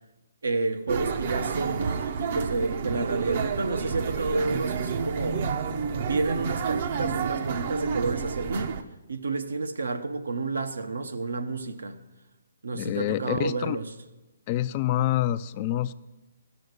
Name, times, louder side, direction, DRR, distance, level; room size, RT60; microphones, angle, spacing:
voice 1, 0.4-5.5 6.0-8.8 9.1-12.0 12.6-13.9, right 3 dB, 85° right, 0.9 m, -30 dB
sound 1, 0.9-8.8, right 6 dB, 45° right, 0.6 m, -30 dB
voice 2, 12.7-13.8 14.5-15.9, left 13 dB, 30° left, 0.3 m, -27 dB
15.5 x 6.4 x 6.6 m
hypercardioid pair, 150°, 0 cm